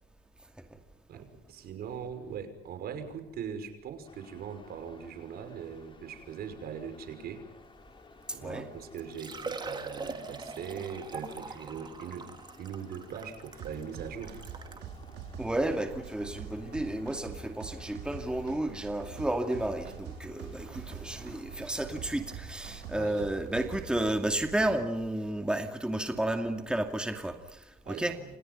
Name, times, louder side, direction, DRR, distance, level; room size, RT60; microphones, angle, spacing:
voice 1, 1.1-7.5 8.3-12.3 12.6-14.4 22.9-23.2 27.8-28.2, right 7 dB, 65° right, 8 dB, 5.8 m, -41 dB
sound 1, 4.0-23.1, left 4 dB, 30° left, 4.9 m, -56 dB
voice 2, 8.3-8.7 15.4-28.2, right 1 dB, 5° right, 5 dB, 2.4 m, -32 dB
Liquid, 9.0-14.9 15.6-15.7 16.1-16.2 17.9-18.0 18.1-18.2, right 4 dB, 25° right, 3.5 m, -42 dB
sound 2, 13.6-24.8, right 7 dB, 85° right, 4.9 m, -44 dB
29.5 x 28.0 x 5.6 m, 0.89 s
cardioid pair, 110°, 17 cm